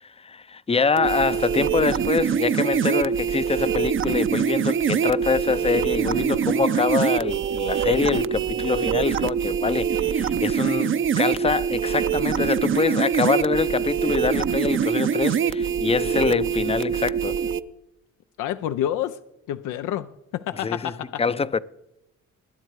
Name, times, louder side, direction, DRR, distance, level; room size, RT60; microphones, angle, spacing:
voice 1, 0.0-17.4 20.6-20.9 21.2-21.6, left 5 dB, 20° left, 0.5 m, -25 dB
sound 1, 1.0-17.6, right 7 dB, 45° right, 0.6 m, -24 dB
voice 2, 18.4-19.2 19.5-21.2, left 11 dB, 85° left, 0.6 m, -28 dB
20.0 x 9.8 x 4.7 m
cardioid pair, 90°, 30 cm